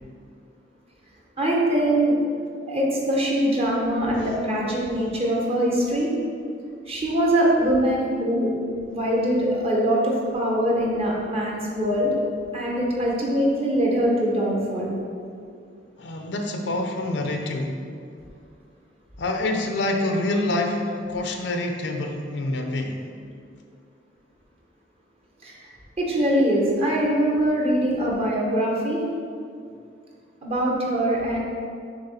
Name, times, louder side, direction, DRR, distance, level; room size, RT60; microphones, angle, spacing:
voice 1, 1.4-2.1 2.7-6.1 6.9-8.5 8.9-12.2 12.5-14.9 25.4-25.5 26.0-29.0 30.4-31.4, right 1 dB, 35° right, -3 dB, 1.2 m, -22 dB
voice 2, 16.0-17.8 19.2-23.1, left 2 dB, 70° left, 4 dB, 0.6 m, -27 dB
6.8 x 3.1 x 5.7 m, 2.3 s
head